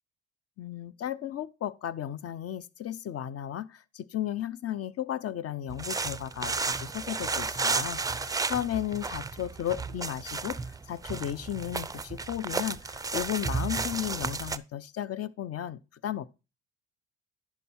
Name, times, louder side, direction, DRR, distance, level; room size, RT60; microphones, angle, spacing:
voice 1, 0.6-16.3, left 11 dB, 45° left, 0.7 m, -34 dB
sound 1, 5.7-14.6, right 4 dB, 10° right, 0.4 m, -33 dB
10.5 x 4.8 x 4.3 m
hypercardioid pair, 65°, 34 cm